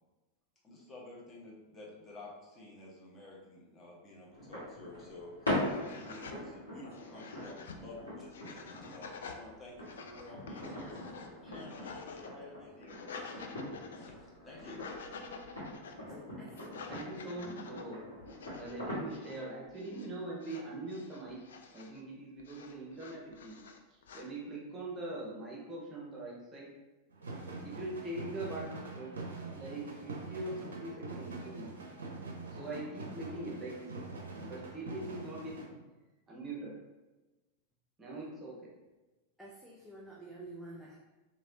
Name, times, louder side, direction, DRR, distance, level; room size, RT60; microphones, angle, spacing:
voice 1, 0.6-14.8, left 2 dB, 20° left, -5 dB, 0.9 m, -51 dB
sound 1, 4.3-19.3, left 1 dB, 80° left, 1.4 m, -42 dB
sound 2, 5.0-5.1 5.5-6.4 6.9-7.8 8.3-9.4 9.8-12.3 12.7-14.2 14.5-16.0 16.5-17.8 18.3-18.8 19.1-19.4 19.7-20.1 20.4-22.0 22.4-24.3, left 5 dB, 60° left, 0.3 m, -49 dB
voice 2, 16.1-16.6 39.4-41.0, right 2 dB, 5° right, -5 dB, 0.5 m, -49 dB
voice 3, 16.7-18.0 18.6-21.4 21.7-23.6 23.9-26.7 27.6-28.7 29.0-29.2 29.5-31.7 32.5-33.9 34.5-35.8 36.3-36.7 38.0-38.7, right 2 dB, 20° right, -3 dB, 0.9 m, -42 dB
sound 3, 27.1-35.7, right 3 dB, 70° right, 0.5 m, -44 dB
3.1 x 2.7 x 2.7 m, 1.1 s
figure-of-eight pair, 90°, 0 cm